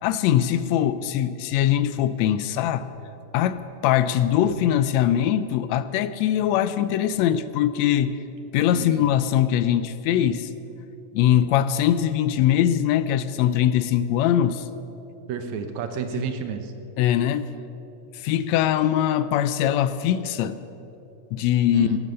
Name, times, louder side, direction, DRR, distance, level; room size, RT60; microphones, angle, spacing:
voice 1, 0.0-2.9 3.3-8.2 8.5-10.5 11.1-14.6 16.2-16.3 17.0-17.5 18.1-20.6 21.3-22.0, left 10 dB, 80° left, 14 dB, 1.7 m, -22 dB
voice 2, 8.7-9.1 15.3-16.7 21.7-22.0, right 7 dB, 70° right, 8 dB, 2.2 m, -30 dB
18.0 x 12.0 x 6.5 m, 2.9 s
omnidirectional pair, 3.5 m